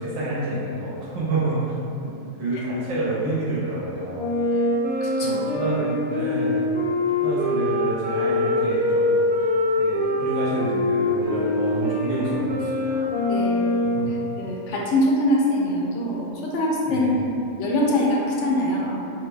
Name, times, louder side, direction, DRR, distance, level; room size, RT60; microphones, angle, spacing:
voice 1, 0.0-1.7 2.0-2.1 2.4-4.3 5.2-6.7 7.2-9.5 9.8-13.3 13.9-14.1 16.9-17.2, right 1 dB, 65° right, -7 dB, 1.2 m, -28 dB
Wind instrument woodwind instrument, 4.1-14.2, left 1 dB, 10° right, 0.7 m, -24 dB
voice 2, 5.0-5.6 13.3-13.7 14.4-19.0, left 1 dB, 65° left, -3 dB, 0.8 m, -24 dB
3.4 x 2.2 x 3.4 m, 2.7 s
omnidirectional pair, 1.5 m